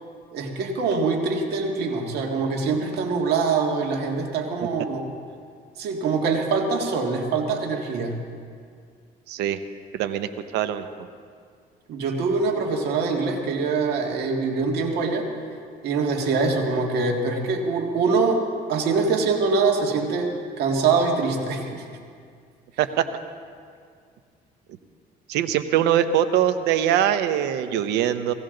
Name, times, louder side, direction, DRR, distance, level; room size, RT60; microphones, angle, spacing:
voice 1, 0.3-5.0 5.8-8.2 11.9-15.3 15.8-21.9, right 4 dB, 75° right, 1 dB, 1.9 m, -24 dB
voice 2, 9.3-9.6 9.9-10.8 22.8-23.0 25.3-28.3, right 10 dB, 90° right, 10 dB, 0.8 m, -22 dB
18.0 x 15.5 x 3.9 m, 2.1 s
cardioid pair, 110°, 17 cm